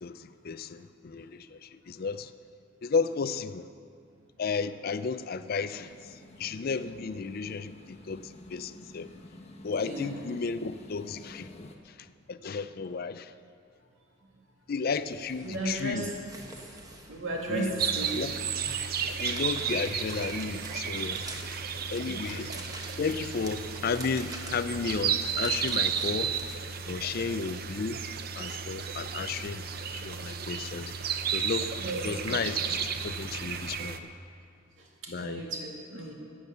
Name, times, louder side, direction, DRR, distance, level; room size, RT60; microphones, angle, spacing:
voice 1, 0.0-2.3 2.8-3.7 4.4-9.1 9.6-13.3 14.7-16.1 17.5-17.7 18.1-18.4 19.2-21.2 21.9-22.5 23.0-26.4 26.9-28.0 28.3-31.7 32.0-34.1 35.1-35.4, left 5 dB, 50° left, 13 dB, 0.4 m, -33 dB
sound 1, 5.2-11.8, left 1 dB, 30° left, 1.0 m, -50 dB
sound 2, 15.0-27.1, right 1 dB, 20° right, 1.1 m, -47 dB
voice 2, 15.4-16.1 17.1-18.1 22.1-22.4 26.8-27.2 31.8-32.4 34.8-36.1, right 2 dB, 70° right, -1 dB, 2.4 m, -35 dB
sound 3, 17.8-34.0, right 7 dB, 50° right, 0.6 m, -33 dB
14.5 x 8.8 x 6.8 m, 2.3 s
head